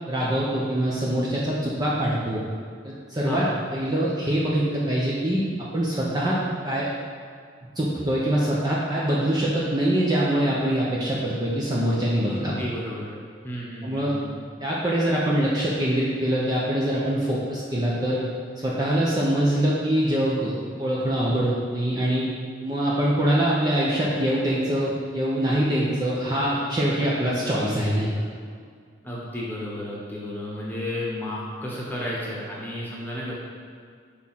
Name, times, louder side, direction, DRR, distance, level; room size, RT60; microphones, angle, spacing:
voice 1, 0.1-2.4 2.8-6.4 6.6-6.9 7.8-12.6 13.8-14.1 14.6-18.2 18.6-22.3 22.6-28.1, right 1 dB, 20° right, -6 dB, 0.7 m, -24 dB
voice 2, 3.3-3.6 12.3-13.2 13.4-14.4 29.0-33.4, left 1 dB, 10° left, -5 dB, 1.2 m, -33 dB
6.3 x 3.7 x 5.8 m, 2.1 s
head